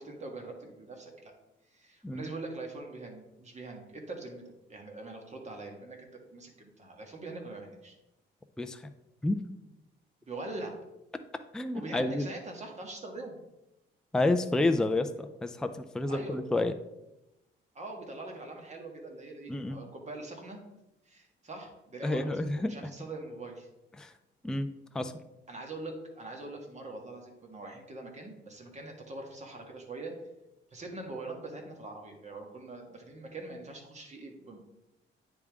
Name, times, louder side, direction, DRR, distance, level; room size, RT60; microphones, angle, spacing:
voice 1, 0.0-1.3 1.7-7.9 10.2-10.8 11.7-13.4 16.1-16.4 17.7-20.6 21.0-22.2 22.5-23.7 25.5-30.1 30.7-34.6, right 2 dB, 35° right, 2 dB, 1.6 m, -43 dB
voice 2, 8.6-8.9 9.2-9.4 11.5-12.3 14.1-16.7 19.5-19.8 22.0-22.8 24.0-24.1 24.4-25.1, left 2 dB, 5° left, 7 dB, 0.4 m, -30 dB
9.5 x 3.6 x 3.5 m, 0.93 s
cardioid pair, 90°, 20 cm